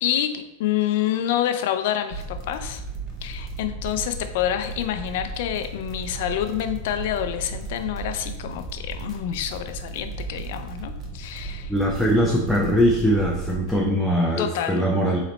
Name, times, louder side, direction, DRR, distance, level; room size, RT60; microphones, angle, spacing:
voice 1, 0.0-2.8 3.2-11.7 14.4-14.8, left 11 dB, 60° left, 9 dB, 0.4 m, -27 dB
sound 1, 2.1-13.8, right 3 dB, 25° right, 0.8 m, -35 dB
voice 2, 11.7-15.2, equal, ahead, -1 dB, 0.4 m, -21 dB
4.0 x 3.1 x 4.0 m, 0.94 s
supercardioid pair, 155°, 0 cm